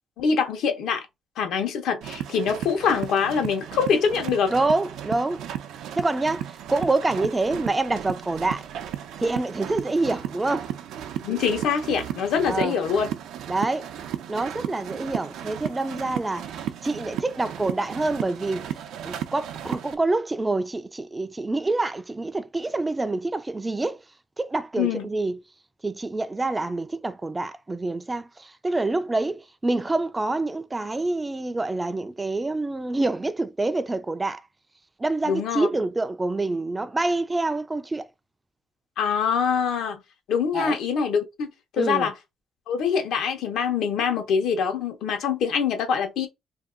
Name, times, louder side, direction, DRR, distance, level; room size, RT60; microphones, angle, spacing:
voice 1, 0.2-1.0 1.4-4.5 11.2-13.1 24.8-25.1 35.2-35.7 39.0-40.0 40.3-42.1 42.7-46.3, left 6 dB, 80° left, 0.9 m, -24 dB
sound 1, 2.0-19.9, right 10 dB, 85° right, 0.5 m, -35 dB
voice 2, 4.5-5.4 6.0-8.6 9.2-10.7 12.4-12.8 13.5-13.9 14.3-24.0 24.4-25.4 25.8-34.4 35.0-38.1 40.5-40.8 41.8-42.1, right 2 dB, 20° right, 0.4 m, -26 dB
2.7 x 2.2 x 3.7 m
cardioid pair, 90°, 0 cm